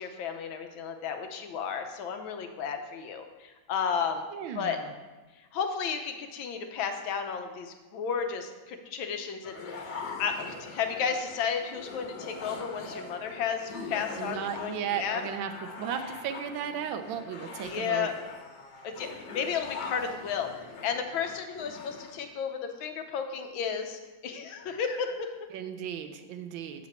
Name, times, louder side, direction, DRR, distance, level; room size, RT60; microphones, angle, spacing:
voice 1, 0.0-4.3 4.6-4.8 5.5-9.9 10.2-15.2 17.6-18.1 18.8-20.5 20.8-25.4, left 7 dB, 85° left, 6 dB, 1.5 m, -33 dB
voice 2, 4.3-4.9 14.2-15.5 15.8-18.1 25.5-26.9, right 8 dB, 80° right, 8 dB, 1.3 m, -35 dB
sound 1, 9.4-22.2, left 3 dB, 65° left, 1.5 m, -42 dB
7.4 x 7.0 x 4.2 m, 1.2 s
omnidirectional pair, 2.1 m